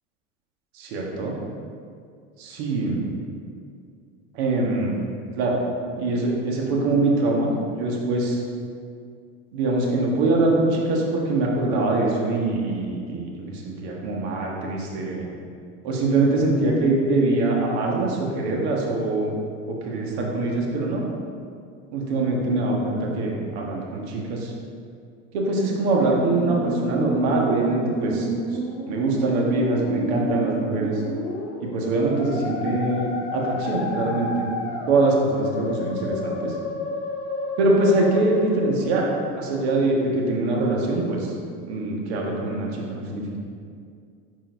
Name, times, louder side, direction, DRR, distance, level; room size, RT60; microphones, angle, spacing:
voice 1, 0.7-1.3 2.4-3.0 4.3-4.9 5.3-5.6 6.0-8.4 9.5-15.3 15.8-19.4 19.7-21.1 21.9-24.5 25.3-28.6 28.9-31.0 31.6-34.4 34.9-36.6 37.6-39.0 39.4-41.3 41.7-43.4, right 2 dB, 75° right, -2 dB, 1.5 m, -23 dB
Musical instrument, 25.9-38.9, left 1 dB, 45° left, 1.5 m, -31 dB
6.2 x 4.5 x 4.5 m, 2.3 s
supercardioid pair, 110°, 33 cm